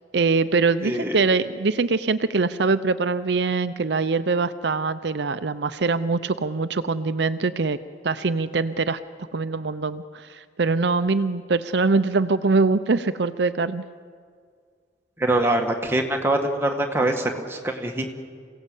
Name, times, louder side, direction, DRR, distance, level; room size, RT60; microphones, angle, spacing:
voice 1, 0.1-7.8 8.0-9.0 9.3-13.8, right 4 dB, 70° right, 12 dB, 0.6 m, -23 dB
voice 2, 0.8-1.2 15.2-18.1, right 1 dB, 15° right, 2 dB, 2.0 m, -24 dB
27.5 x 17.0 x 8.3 m, 2.1 s
head